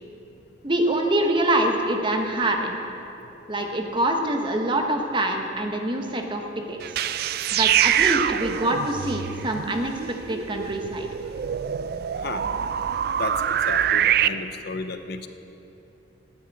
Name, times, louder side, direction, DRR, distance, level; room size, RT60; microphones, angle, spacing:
voice 1, 0.6-2.8 3.5-6.4 6.7-7.0 7.5-9.9 10.3-11.1, right 1 dB, 25° right, 3 dB, 1.0 m, -25 dB
sound 1, 6.8-14.3, right 9 dB, 55° right, 0.3 m, -25 dB
voice 2, 13.2-15.3, left 3 dB, 55° left, 9 dB, 0.6 m, -33 dB
10.0 x 9.5 x 8.3 m, 3.0 s
head